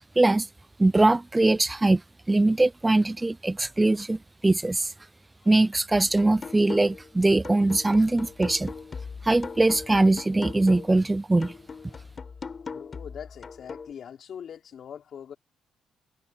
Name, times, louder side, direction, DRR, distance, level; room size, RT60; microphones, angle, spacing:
voice 1, 0.2-0.5 0.8-2.0 2.3-4.9 5.5-8.7 9.2-11.5, right 2 dB, 15° right, 0.4 m, -22 dB
sound 1, 5.9-7.1 7.4-11.0 11.4-13.9, left 5 dB, 35° left, 5.1 m, -40 dB
voice 2, 12.5-15.4, left 8 dB, 60° left, 4.1 m, -42 dB
cardioid pair, 90°, 0 cm